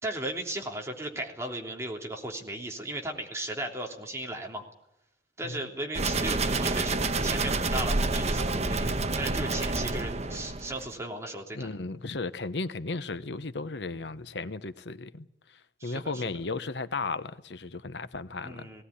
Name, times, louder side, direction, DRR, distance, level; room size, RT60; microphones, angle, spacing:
voice 1, 0.0-4.6 5.4-11.7 15.8-16.2 18.4-18.8, right 1 dB, 15° right, 3.3 m, -36 dB
sound 1, 5.9-10.9, right 3 dB, 40° right, 1.1 m, -28 dB
voice 2, 11.5-15.3 15.8-18.7, left 3 dB, 80° left, 1.0 m, -35 dB
18.5 x 18.0 x 9.9 m
head